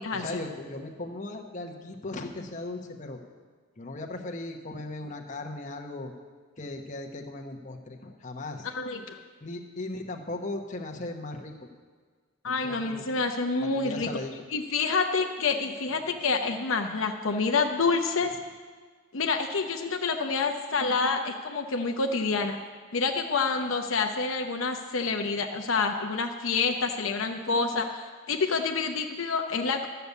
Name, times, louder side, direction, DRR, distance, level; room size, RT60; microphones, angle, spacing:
voice 1, 0.1-3.2 3.8-6.1 6.6-8.7 9.4-11.7 12.4-13.2 13.6-14.4, left 2 dB, 35° left, 2 dB, 1.0 m, -37 dB
voice 2, 8.6-9.2 12.4-14.1 14.5-18.3 19.1-22.6 22.9-29.9, left 4 dB, 75° left, 4 dB, 0.8 m, -28 dB
12.0 x 6.9 x 8.2 m, 1.5 s
head